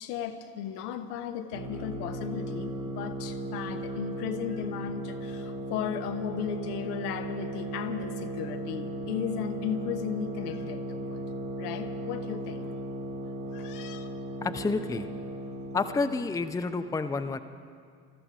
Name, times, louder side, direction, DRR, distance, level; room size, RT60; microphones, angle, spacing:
voice 1, 0.0-11.2 11.6-12.7 13.5-14.1, left 9 dB, 70° left, 7 dB, 1.1 m, -36 dB
sound 1, 1.5-16.1, right 1 dB, 85° right, 3.9 m, -36 dB
voice 2, 14.4-15.1 15.7-17.4, left 3 dB, 5° left, 9 dB, 0.6 m, -29 dB
20.0 x 13.5 x 5.1 m, 2.1 s
figure-of-eight pair, 60°, 49 cm